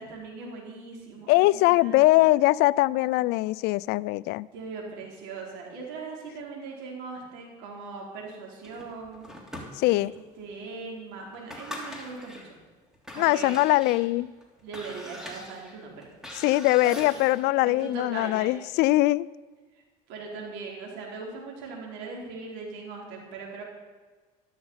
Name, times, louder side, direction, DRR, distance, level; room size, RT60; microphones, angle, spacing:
voice 1, 0.0-2.3 4.5-9.3 9.9-12.5 13.1-13.6 14.6-16.1 16.8-17.2 17.6-18.5 19.7-19.8 20.1-23.6, right 4 dB, 80° right, -1 dB, 4.5 m, -40 dB
voice 2, 1.3-4.5 9.8-10.1 13.2-14.3 16.4-19.3, left 18 dB, 70° left, 21 dB, 0.4 m, -22 dB
sound 1, 8.6-10.2 10.7-10.8 11.3-12.5 12.9-17.5, left 1 dB, 5° right, 3.2 m, -43 dB
13.0 x 13.0 x 5.7 m, 1.4 s
supercardioid pair, 90°, 17 cm